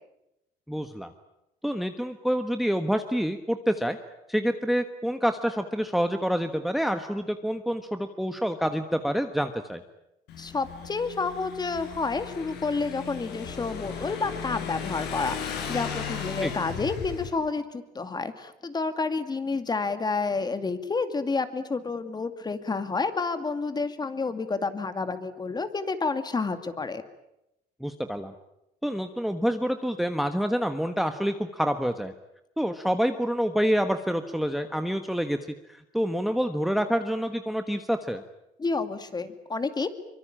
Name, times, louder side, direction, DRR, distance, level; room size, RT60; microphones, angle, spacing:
voice 1, 0.7-1.1 1.6-4.0 4.3-9.8 16.4-16.5 27.8-28.3 28.8-32.1 32.6-35.4 35.7-38.2, equal, ahead, 8 dB, 1.3 m, -27 dB
Motorcycle / Engine, 10.3-17.3, left 7 dB, 80° left, 5.5 m, -36 dB
voice 2, 10.4-27.0 38.6-39.9, left 4 dB, 25° left, 10 dB, 2.3 m, -29 dB
24.5 x 23.5 x 8.9 m, 0.87 s
cardioid pair, 110°, 17 cm